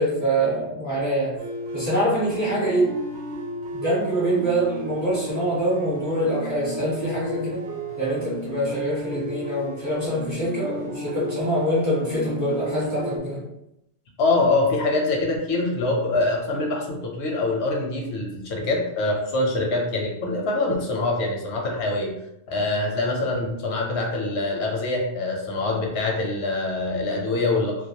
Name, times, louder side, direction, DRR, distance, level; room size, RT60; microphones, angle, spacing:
voice 1, 0.0-1.4 1.7-3.0 3.7-7.6 8.0-13.4, right 1 dB, 20° right, -8 dB, 0.8 m, -24 dB
sound 1, 1.4-13.2, right 1 dB, 85° right, 0.9 m, -34 dB
voice 2, 14.2-22.1 22.5-27.8, left 2 dB, 85° left, 1 dB, 0.9 m, -24 dB
2.3 x 2.1 x 2.7 m, 0.84 s
omnidirectional pair, 1.1 m